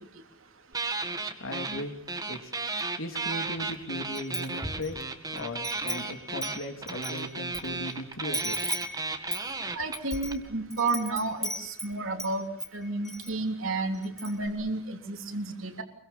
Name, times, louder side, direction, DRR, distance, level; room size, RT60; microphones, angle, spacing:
sound 1, 0.7-1.8 2.1-10.3, right 3 dB, 15° right, 1.9 m, -34 dB
voice 1, 1.4-2.0 2.3-2.5 3.0-5.0 5.3-8.6, left 1 dB, 65° left, 5 dB, 3.5 m, -37 dB
Wind chime, 4.1-5.0 5.4-7.6 7.9-8.0 8.3-12.3 12.6-13.3 13.7-13.8 14.0-14.5, equal, ahead, 2.6 m, -37 dB
voice 2, 9.8-12.5 12.7-15.8, right 3 dB, 65° right, 5 dB, 3.5 m, -31 dB
25.5 x 23.5 x 7.3 m, 0.71 s
head